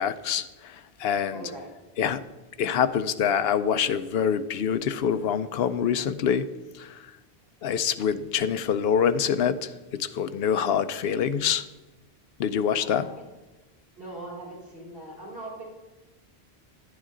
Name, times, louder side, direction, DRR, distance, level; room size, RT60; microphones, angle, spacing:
voice 1, 0.0-1.5 2.0-2.2 2.6-6.5 6.8-7.0 7.6-11.6 12.4-13.1, left 8 dB, 70° left, 0.8 m, -25 dB
voice 2, 1.3-1.7 10.5-10.8 12.8-13.2 14.0-15.6, right 1 dB, 55° right, 4.3 m, -40 dB
10.5 x 9.2 x 3.8 m
omnidirectional pair, 1.1 m